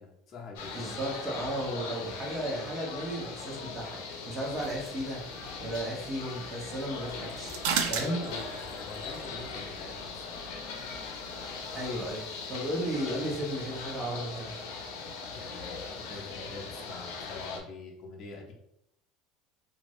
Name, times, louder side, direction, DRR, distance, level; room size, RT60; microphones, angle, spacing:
voice 1, 0.0-0.8 7.9-10.5 15.3-18.5, left 3 dB, 35° left, -2 dB, 0.7 m, -44 dB
sound 1, 0.6-17.6, left 4 dB, 80° left, 0.6 m, -40 dB
voice 2, 0.7-4.0 4.3-5.2 5.6-7.5 7.9-8.2 11.7-12.2 12.5-14.5, right 1 dB, 30° right, -2 dB, 0.9 m, -34 dB
sound 2, 4.4-12.1, right 7 dB, 80° right, 0.4 m, -39 dB
2.6 x 2.5 x 3.0 m, 0.78 s
supercardioid pair, 130°, 0 cm